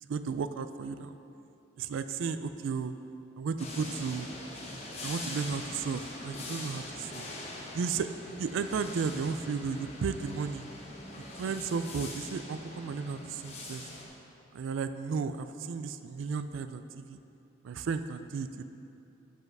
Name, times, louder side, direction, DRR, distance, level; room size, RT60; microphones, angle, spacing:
voice 1, 0.1-1.2 1.8-2.9 3.4-4.3 5.0-7.3 7.7-8.1 8.4-10.7 11.4-13.8 14.5-17.2 17.6-18.7, right 5 dB, 75° right, 10 dB, 0.3 m, -34 dB
sound 1, 3.6-14.1, left 2 dB, 30° left, 1.0 m, -43 dB
7.6 x 5.6 x 6.0 m, 2.7 s
head